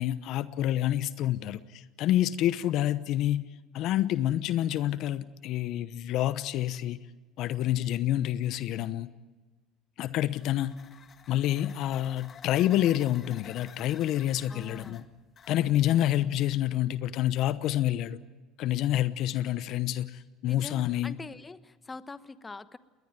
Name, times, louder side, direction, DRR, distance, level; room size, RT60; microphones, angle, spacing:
voice 1, 0.0-3.4 3.7-7.0 7.4-9.1 10.0-10.8 11.3-15.0 15.5-18.2 18.6-21.2, left 13 dB, 65° left, 15 dB, 0.9 m, -28 dB
sound 1, 10.3-16.5, left 7 dB, 40° left, 1.7 m, -52 dB
voice 2, 14.5-15.0 20.5-22.8, left 3 dB, 20° left, 14 dB, 1.1 m, -44 dB
20.5 x 20.5 x 9.0 m, 1.3 s
supercardioid pair, 90°, 0 cm